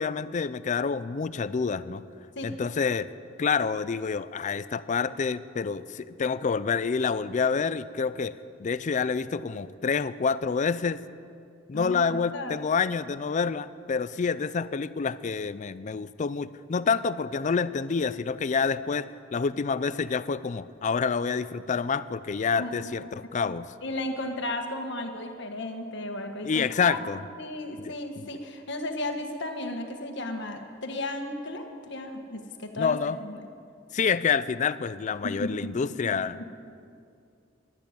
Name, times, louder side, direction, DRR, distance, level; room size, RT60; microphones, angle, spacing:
voice 1, 0.0-2.0 2.4-3.1 3.4-8.3 8.6-11.0 11.7-23.7 26.4-27.2 27.8-28.3 32.8-33.2 33.9-36.5, left 5 dB, 40° left, 16 dB, 0.4 m, -28 dB
voice 2, 11.7-12.6 22.6-22.9 23.4-23.5 23.8-27.0 27.4-33.4 35.2-36.5, left 1 dB, 65° left, 4 dB, 1.6 m, -35 dB
12.0 x 12.0 x 9.1 m, 2.4 s
head